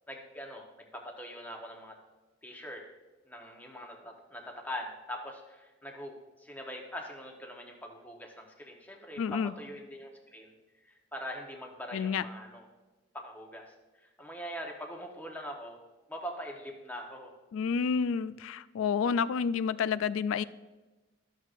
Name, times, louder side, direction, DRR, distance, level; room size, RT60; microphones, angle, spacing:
voice 1, 0.1-2.0 2.4-2.8 3.3-10.5 10.8-12.7 13.1-15.8 16.1-17.4, equal, 10° left, 1 dB, 0.9 m, -43 dB
voice 2, 9.2-9.5 11.9-12.2 17.5-20.4, left 6 dB, 85° left, 17 dB, 0.3 m, -29 dB
12.5 x 6.4 x 2.5 m, 1.2 s
head